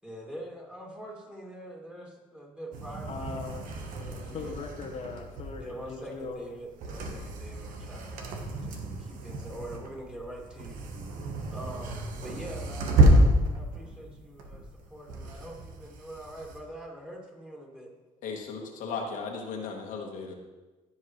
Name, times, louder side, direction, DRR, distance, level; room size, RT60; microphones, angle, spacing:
voice 1, 0.0-3.4 3.9-4.6 5.6-10.8 11.5-17.9, right 1 dB, 5° right, -2 dB, 2.6 m, -44 dB
sound 1, 2.7-16.6, right 1 dB, 80° right, 1.2 m, -29 dB
voice 2, 3.1-3.8 4.3-6.4, left 4 dB, 55° left, 1 dB, 1.1 m, -39 dB
voice 3, 18.2-20.3, left 5 dB, 80° left, 1 dB, 1.5 m, -36 dB
15.0 x 5.5 x 3.2 m, 1.2 s
cardioid pair, 85°, 14 cm